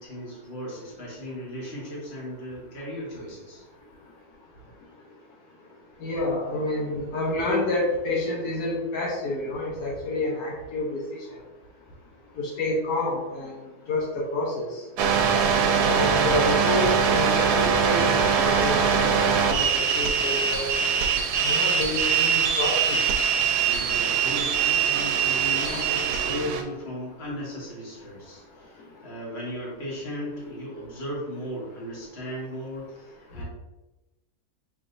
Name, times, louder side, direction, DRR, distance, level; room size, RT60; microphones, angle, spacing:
voice 1, 0.0-3.6 23.6-33.4, equal, 40° left, -5 dB, 1.6 m, -36 dB
voice 2, 6.0-11.0 12.4-13.6 13.9-14.7 15.9-19.2 19.5-20.7 21.4-23.0, left 2 dB, 80° left, -3 dB, 1.4 m, -28 dB
sound 1, 15.0-26.6, right 6 dB, 90° right, 1.2 m, -22 dB
5.6 x 3.3 x 2.6 m, 1.1 s
omnidirectional pair, 1.7 m